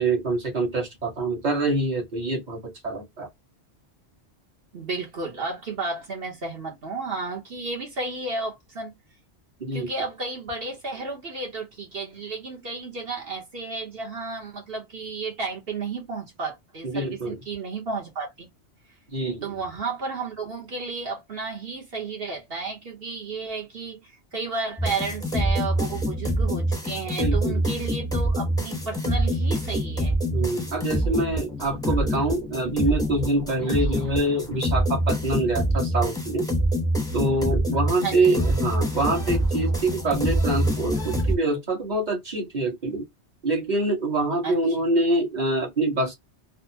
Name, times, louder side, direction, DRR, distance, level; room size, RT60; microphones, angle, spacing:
voice 1, 0.0-3.3 9.6-9.9 16.8-17.4 19.1-19.5 27.2-27.6 30.3-36.4 37.1-43.0 43.4-46.1, right 2 dB, 40° right, 1.5 m, -25 dB
voice 2, 4.7-8.9 9.7-18.5 19.4-30.1 38.0-38.4 44.4-44.6, right 4 dB, 60° right, 1.2 m, -32 dB
sound 1, 24.8-41.4, equal, 5° left, 0.7 m, -25 dB
4.0 x 2.0 x 2.8 m
omnidirectional pair, 1.1 m